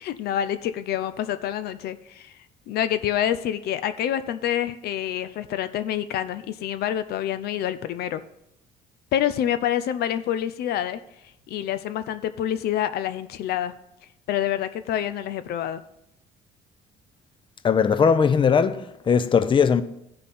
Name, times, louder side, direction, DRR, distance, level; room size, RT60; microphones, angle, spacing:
voice 1, 0.0-2.3 2.7-8.2 9.1-11.0 11.5-13.7 14.3-15.8, left 11 dB, 70° left, 0.6 m, -27 dB
voice 2, 17.6-19.8, left 6 dB, 30° left, 0.6 m, -19 dB
14.0 x 5.4 x 4.3 m
cardioid pair, 110°, 17 cm